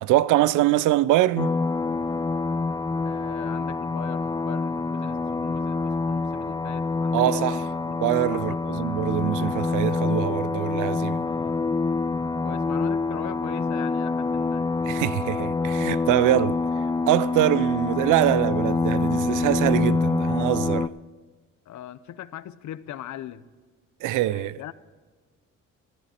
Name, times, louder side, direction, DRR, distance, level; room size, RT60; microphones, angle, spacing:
voice 1, 0.0-1.5 7.1-7.6 8.0-11.2 14.8-16.6 17.1-20.9 24.0-24.7, right 14 dB, 85° right, 0.5 m, -23 dB
sound 1, 1.4-20.9, left 3 dB, 15° left, 0.4 m, -26 dB
voice 2, 3.0-8.6 11.2-11.7 12.4-14.7 21.7-23.5 24.3-24.7, left 12 dB, 70° left, 0.8 m, -40 dB
14.0 x 14.0 x 4.4 m
cardioid pair, 90°, 30 cm